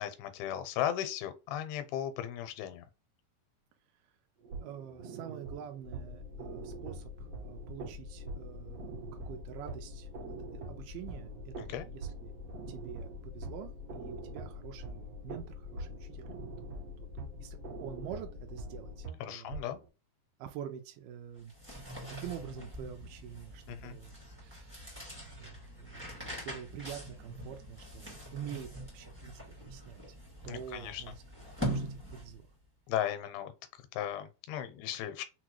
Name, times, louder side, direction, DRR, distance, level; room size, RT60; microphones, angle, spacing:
voice 1, 0.0-2.9 11.6-11.9 19.2-19.8 23.7-24.0 30.5-31.1 32.9-35.2, left 11 dB, 85° left, 2.5 m, -36 dB
sound 1, 4.4-19.9, right 5 dB, 55° right, 1.8 m, -45 dB
voice 2, 4.6-10.1 10.5-12.3 12.7-16.3 16.6-16.7 17.4-19.5 20.4-24.1 24.4-24.8 25.3-30.0 30.4-31.1 31.7-32.5, right 9 dB, 80° right, 1.9 m, -46 dB
sound 2, 5.8-19.1, left 6 dB, 65° left, 1.1 m, -47 dB
sound 3, 21.3-32.5, equal, 5° right, 0.8 m, -43 dB
6.0 x 2.2 x 3.0 m
omnidirectional pair, 4.5 m